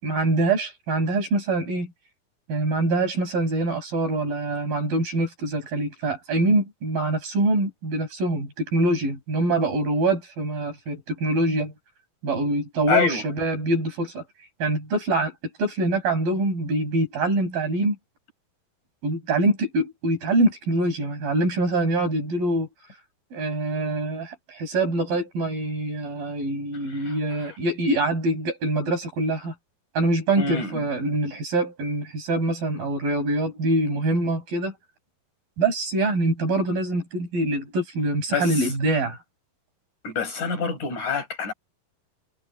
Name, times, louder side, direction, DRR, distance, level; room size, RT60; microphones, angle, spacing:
voice 1, 0.0-1.9 2.5-11.7 12.2-14.2 14.6-15.3 15.6-18.0 19.0-22.7 23.3-29.5 30.0-34.7 35.6-39.2, right 2 dB, 70° right, 9.6 m, -24 dB
voice 2, 12.9-13.2 26.9-27.2 27.4-27.5 30.4-30.9 38.3-38.7 40.0-41.5, left 5 dB, 55° left, 7.4 m, -26 dB
omnidirectional pair, 4.2 m